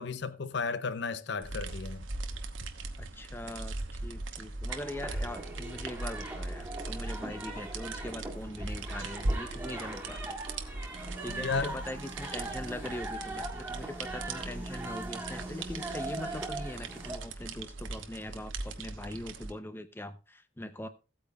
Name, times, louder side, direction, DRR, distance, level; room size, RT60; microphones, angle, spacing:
voice 1, 0.0-2.0 11.3-11.8, left 4 dB, 60° left, 0.6 m, -34 dB
sound 1, 1.4-19.5, right 2 dB, 80° right, 1.1 m, -39 dB
voice 2, 3.0-10.4 11.2-20.9, left 1 dB, 10° left, 0.6 m, -42 dB
sound 2, 4.7-17.2, right 2 dB, 10° right, 1.8 m, -41 dB
16.5 x 8.6 x 2.3 m
head